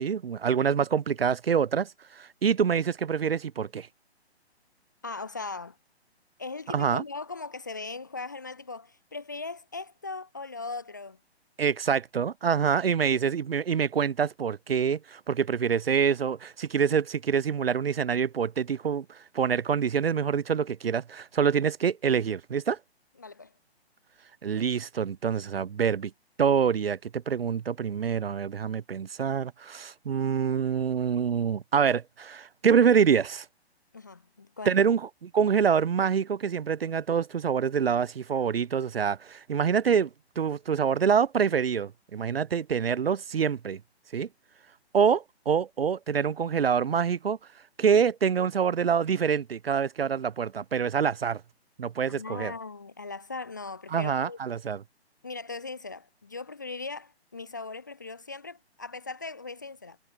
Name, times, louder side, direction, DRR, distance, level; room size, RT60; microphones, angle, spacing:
voice 1, 0.0-3.9 6.7-7.0 11.6-22.8 24.4-26.1 26.4-33.5 34.7-40.1 40.4-43.8 44.1-44.3 44.9-47.4 47.8-51.4 51.8-52.5 53.9-54.8, right 7 dB, 60° right, 0.5 m, -26 dB
voice 2, 5.0-5.8 6.4-11.2 23.2-23.5 33.9-34.7 52.1-54.4 55.2-60.0, left 3 dB, 20° left, 0.5 m, -39 dB
figure-of-eight pair, 135°, 33 cm